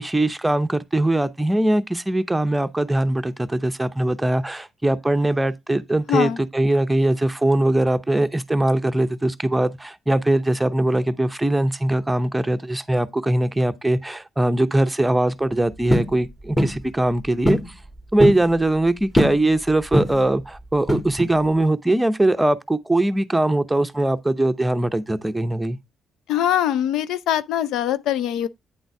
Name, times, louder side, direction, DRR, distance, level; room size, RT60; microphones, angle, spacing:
voice 1, 0.0-17.6 18.1-25.8, right 1 dB, 10° right, 0.7 m, -21 dB
sound 1, 15.9-16.2 16.6-16.8 17.5-17.7 18.0-18.5 19.2-19.5 19.9-20.3 20.9-21.4, left 1 dB, 15° left, 1.6 m, -21 dB
voice 2, 26.3-28.5, left 11 dB, 85° left, 0.4 m, -22 dB
9.1 x 3.9 x 4.6 m
cardioid pair, 90°, 0 cm